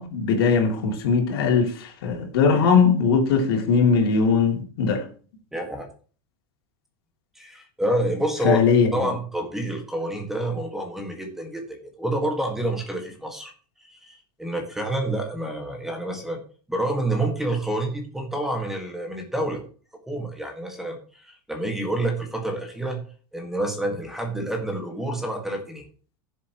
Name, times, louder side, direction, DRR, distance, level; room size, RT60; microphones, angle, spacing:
voice 1, 0.0-5.0 8.4-8.9, left 5 dB, 85° left, 2.9 m, -20 dB
voice 2, 5.5-5.9 7.4-13.5 13.8-16.4 16.7-19.6 20.1-23.0 23.3-25.8, right 1 dB, 5° right, 1.8 m, -28 dB
16.5 x 7.2 x 3.1 m
supercardioid pair, 160°, 12 cm